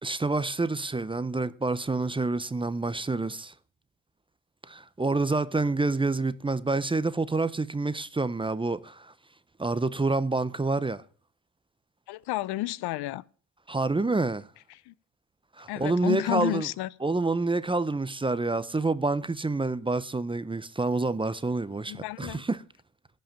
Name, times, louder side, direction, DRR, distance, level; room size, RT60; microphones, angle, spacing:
voice 1, 0.0-3.5 4.7-9.1 9.6-11.0 13.7-14.5 15.6-16.7 17.0-22.6, right 3 dB, 15° right, 0.6 m, -28 dB
voice 2, 12.1-13.2 14.7-14.9 15.7-16.9 21.9-22.4, left 16 dB, 70° left, 0.6 m, -31 dB
14.0 x 5.7 x 7.4 m
supercardioid pair, 75°, 40 cm